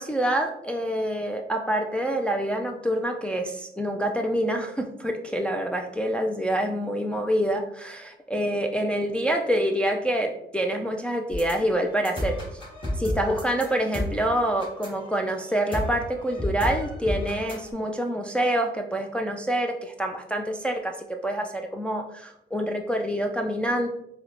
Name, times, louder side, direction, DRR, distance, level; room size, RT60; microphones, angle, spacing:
voice 1, 0.0-12.6 13.0-23.9, right 1 dB, 5° left, 2 dB, 0.3 m, -26 dB
sound 1, 11.3-17.7, left 1 dB, 25° left, 1.4 m, -32 dB
4.3 x 2.1 x 2.6 m, 0.78 s
cardioid pair, 85°, 19 cm